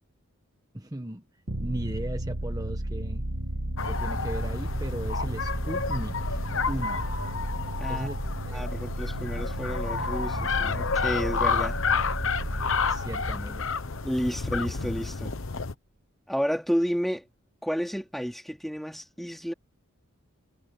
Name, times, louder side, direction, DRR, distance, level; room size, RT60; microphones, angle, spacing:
voice 1, 0.7-1.2 1.6-3.3 3.8-6.4 6.7-7.0 7.9-8.2 8.4-8.6 12.9-13.7, right 1 dB, 15° right, 1.2 m, -36 dB
sound 1, 1.5-14.9, right 1 dB, 55° right, 1.8 m, -33 dB
sound 2, 3.8-15.7, left 5 dB, 60° left, 1.1 m, -30 dB
voice 2, 8.5-11.8 14.0-15.4 16.3-17.3 17.6-19.5, equal, ahead, 2.9 m, -31 dB
head